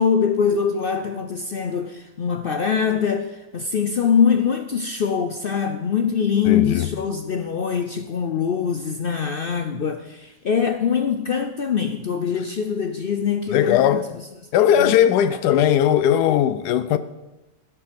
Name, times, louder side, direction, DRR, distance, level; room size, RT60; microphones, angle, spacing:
voice 1, 0.0-14.0 14.8-15.0 15.5-15.6, left 7 dB, 60° left, 0.5 m, -23 dB
voice 2, 6.4-6.9 13.5-14.1 14.5-17.0, left 10 dB, 90° left, 1.2 m, -18 dB
16.0 x 6.8 x 5.2 m
omnidirectional pair, 1.6 m